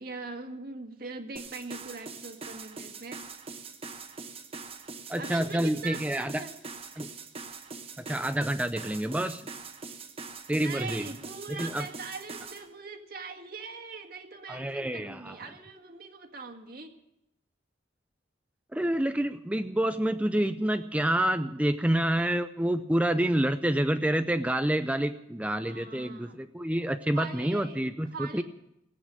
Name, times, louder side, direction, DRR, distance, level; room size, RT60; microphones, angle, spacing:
voice 1, 0.0-3.2 5.2-6.5 10.5-16.9 25.6-26.4 27.1-28.4, right 4 dB, 50° right, 5 dB, 1.9 m, -41 dB
sound 1, 1.4-12.7, right 4 dB, 30° right, 1.4 m, -43 dB
voice 2, 5.1-6.4 7.0-7.1 8.0-9.4 10.5-11.1 11.5-11.8 14.5-15.3 18.7-28.4, right 1 dB, 5° right, 9 dB, 0.5 m, -28 dB
17.5 x 8.6 x 8.7 m, 0.81 s
head